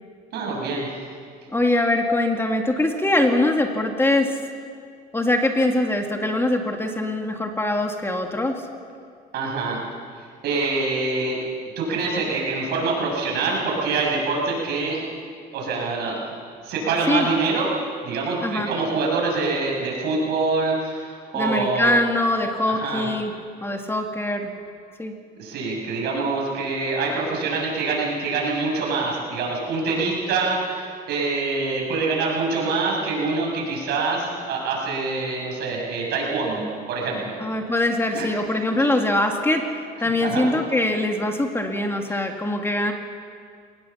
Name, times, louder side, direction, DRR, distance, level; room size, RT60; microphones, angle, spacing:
voice 1, 0.3-0.9 9.3-9.8 10.4-11.4 11.8-15.0 15.5-16.1 16.6-17.7 18.0-22.0 22.5-23.1 25.4-37.3 38.1-38.3 40.0-40.5 42.1-42.2, right 3 dB, 75° right, -1 dB, 6.8 m, -25 dB
voice 2, 1.5-4.4 5.1-8.6 17.1-17.3 18.4-18.7 21.3-23.3 23.6-24.5 25.0-25.1 37.4-42.9, left 1 dB, 15° left, 3 dB, 2.0 m, -23 dB
22.5 x 19.5 x 7.2 m, 2.2 s
cardioid pair, 110°, 17 cm